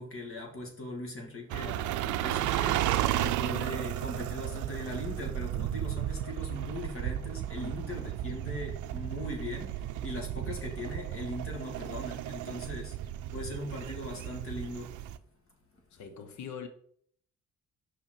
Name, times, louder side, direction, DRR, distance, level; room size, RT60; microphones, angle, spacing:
voice 1, 0.0-13.0 13.3-14.9, left 1 dB, 45° left, 2.2 m, -40 dB
sound 1, 1.5-15.2, right 12 dB, 80° right, 0.5 m, -34 dB
voice 2, 15.9-16.7, left 7 dB, 70° left, 1.0 m, -43 dB
5.8 x 5.7 x 4.4 m
cardioid pair, 90°, 30 cm